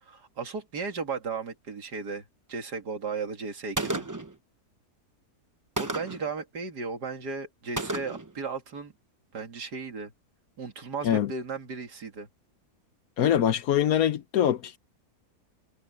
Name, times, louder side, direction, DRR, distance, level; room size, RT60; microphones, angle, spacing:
voice 1, 0.0-2.2 2.5-4.1 5.8-8.9 9.3-10.1 10.6-12.3, right 4 dB, 80° right, 2.9 m, -35 dB
Gunshot gunfire, 3.8-4.4 5.8-6.3 7.8-8.3, right 2 dB, 15° right, 0.8 m, -32 dB
voice 2, 13.2-14.8, left 10 dB, 70° left, 1.1 m, -24 dB
omnidirectional pair, 1.7 m